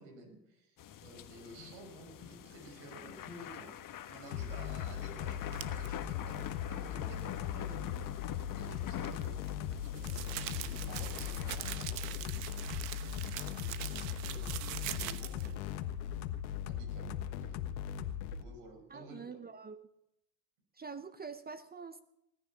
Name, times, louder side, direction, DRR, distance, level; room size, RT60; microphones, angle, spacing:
voice 1, 0.0-3.7 4.1-7.9 8.6-9.4 9.9-12.5 13.5-15.7 16.7-17.8 18.4-19.4, right 2 dB, 65° right, 4 dB, 6.1 m, -53 dB
sound 1, 0.8-11.6, left 10 dB, 40° left, 1.3 m, -46 dB
sound 2, 4.3-18.4, left 10 dB, 85° left, 1.4 m, -39 dB
sound 3, 5.5-5.9 9.0-15.5, right 13 dB, 80° right, 1.1 m, -42 dB
voice 2, 18.9-19.8 20.7-22.0, right 5 dB, 20° right, 13 dB, 0.7 m, -45 dB
19.5 x 10.0 x 7.2 m, 0.81 s
supercardioid pair, 90°, 49 cm